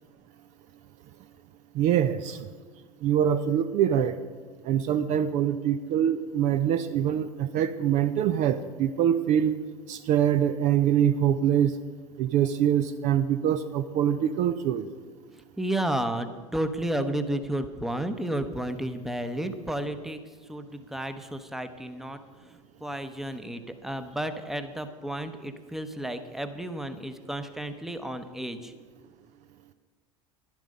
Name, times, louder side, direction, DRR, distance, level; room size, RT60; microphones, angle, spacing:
voice 1, 1.8-2.4 3.0-4.2 4.7-9.5 9.9-11.7 12.2-14.9, right 9 dB, 45° right, 11 dB, 0.5 m, -24 dB
voice 2, 15.6-20.2 20.5-22.2 22.8-28.7, right 1 dB, ahead, 9 dB, 0.9 m, -32 dB
11.5 x 10.5 x 5.3 m, 1.5 s
figure-of-eight pair, 75°, 17 cm